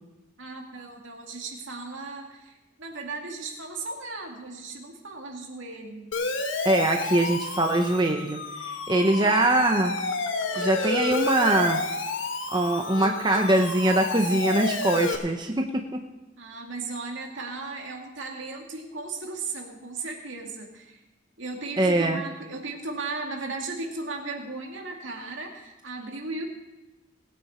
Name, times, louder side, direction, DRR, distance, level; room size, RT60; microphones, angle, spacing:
voice 1, 0.4-6.1 9.2-9.3 16.4-21.0 21.4-26.5, right 3 dB, 75° right, 1 dB, 2.3 m, -36 dB
Siren, 6.1-15.2, left 3 dB, 75° left, 1.3 m, -30 dB
voice 2, 6.6-9.9 10.6-11.8 12.5-16.1 21.8-22.2, right 1 dB, 20° right, 3 dB, 0.7 m, -23 dB
19.5 x 9.0 x 4.3 m, 1.1 s
head